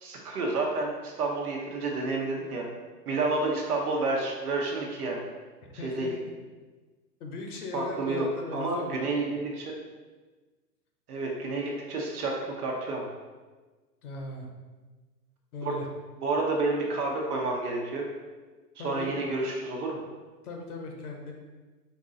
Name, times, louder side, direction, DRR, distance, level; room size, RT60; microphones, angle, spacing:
voice 1, 0.0-2.6 3.1-5.2 5.8-6.1 7.7-8.2 8.5-9.7 11.1-12.3 12.6-13.1 15.6-15.7 16.2-18.0 18.8-20.0, right 3 dB, 65° right, -1 dB, 1.0 m, -30 dB
voice 2, 5.6-6.3 7.2-9.4 14.0-14.5 15.5-15.9 18.8-19.1 20.4-21.3, left 2 dB, 60° left, 2 dB, 1.0 m, -39 dB
4.6 x 2.7 x 3.7 m, 1.3 s
hypercardioid pair, 120°, 49 cm